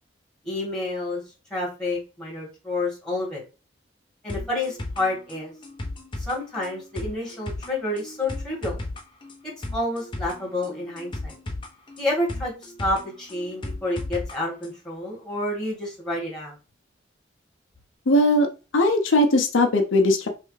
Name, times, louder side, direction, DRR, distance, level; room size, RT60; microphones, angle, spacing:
voice 1, 0.4-1.2 1.5-3.4 4.2-5.5 6.2-8.8 9.4-11.3 12.0-16.6, left 2 dB, 5° left, -4 dB, 2.0 m, -29 dB
sound 1, 4.3-14.3 14.6-14.7, left 2 dB, 25° left, 0.7 m, -35 dB
voice 2, 18.1-18.5 18.7-20.3, left 1 dB, 80° left, 4 dB, 0.7 m, -19 dB
3.3 x 3.2 x 3.2 m, 0.32 s
head